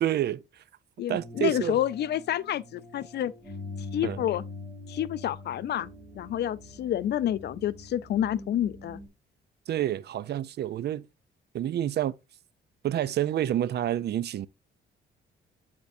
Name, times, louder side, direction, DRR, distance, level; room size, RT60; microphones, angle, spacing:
voice 1, 0.0-0.6 1.1-1.8 4.0-4.2 9.7-11.1 11.5-12.1 12.8-14.5, right 11 dB, 55° right, 0.5 m, -28 dB
voice 2, 1.0-3.3 3.9-4.4 4.9-5.9 6.1-9.0, left 11 dB, 55° left, 0.4 m, -29 dB
sound 1, 1.1-9.1, left 2 dB, ahead, 3.0 m, -44 dB
10.5 x 3.5 x 2.6 m
cardioid pair, 90°, 20 cm